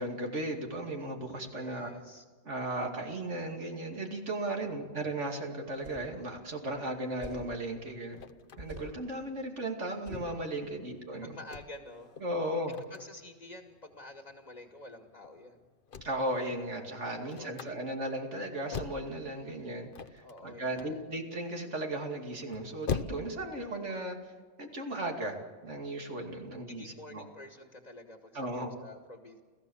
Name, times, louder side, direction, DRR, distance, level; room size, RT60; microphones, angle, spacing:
voice 1, 0.0-1.9 2.4-8.2 8.6-11.4 12.2-12.7 16.0-24.3 24.6-27.3 28.3-28.7, right 1 dB, 75° right, 2 dB, 2.8 m, -36 dB
voice 2, 1.5-2.2 4.5-4.9 11.2-12.1 12.9-15.6 17.2-17.8 20.2-21.0 26.7-29.4, left 1 dB, 35° left, 4 dB, 2.0 m, -49 dB
sound 1, 5.7-6.2 7.2-7.5 8.6-9.0 10.0-10.4, right 1 dB, 50° right, 7.8 m, -44 dB
sound 2, 6.7-23.5, left 6 dB, 50° left, 1.0 m, -43 dB
29.5 x 15.5 x 7.2 m, 1.5 s
omnidirectional pair, 1.2 m